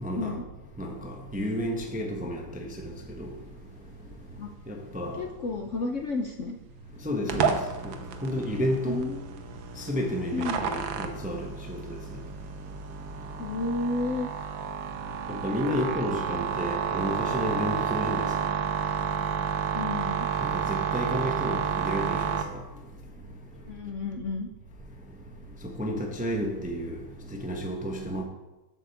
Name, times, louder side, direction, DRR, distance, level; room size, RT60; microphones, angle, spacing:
voice 1, 0.0-0.3 0.8-2.4 3.2-3.3 4.7-5.2 7.0-7.6 7.8-7.9 8.2-9.0 9.9-12.0 15.3-18.3 20.4-22.2 25.8-26.9 27.3-28.2, equal, 5° right, 0.6 m, -31 dB
voice 2, 5.1-6.6 8.8-9.3 10.3-10.7 13.4-14.3 19.7-20.3 23.6-24.5, left 3 dB, 55° left, 0.8 m, -31 dB
sound 1, 7.3-22.4, right 7 dB, 85° right, 1.6 m, -31 dB
8.0 x 6.0 x 7.1 m
omnidirectional pair, 2.0 m